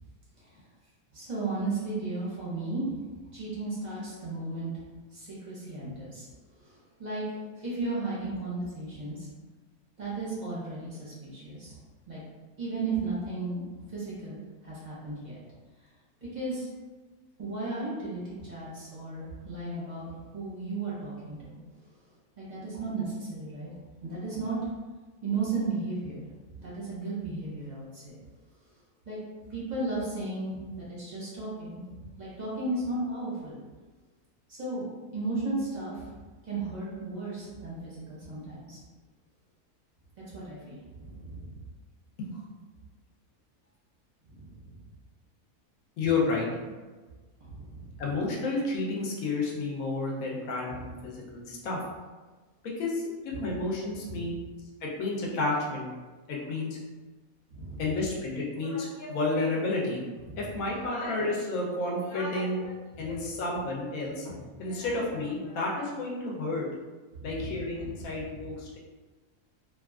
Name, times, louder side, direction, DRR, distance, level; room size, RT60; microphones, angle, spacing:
voice 1, 1.1-2.9 3.3-4.7 5.1-6.2 6.6-7.2 7.6-9.3 10.0-11.7 12.1-12.2 12.6-13.6 13.9-15.4 16.2-16.7 17.4-21.6 22.4-23.7 24.0-24.6 25.2-26.2 26.6-28.2 29.1-29.2 29.5-33.6 34.5-34.9 35.1-36.0 36.4-38.8 40.3-41.5 44.3-44.5 47.4-48.0 53.4-53.5 54.0-54.2 57.5-57.8 60.2-60.4 67.1-68.3, right 3 dB, 40° right, -8 dB, 0.6 m, -35 dB
voice 2, 46.0-46.5 48.0-51.8 52.6-54.3 54.8-55.9 56.3-56.8 57.8-66.7 67.2-68.8, left 3 dB, 70° left, -3 dB, 1.0 m, -31 dB
2.8 x 2.3 x 2.3 m, 1.3 s
omnidirectional pair, 1.6 m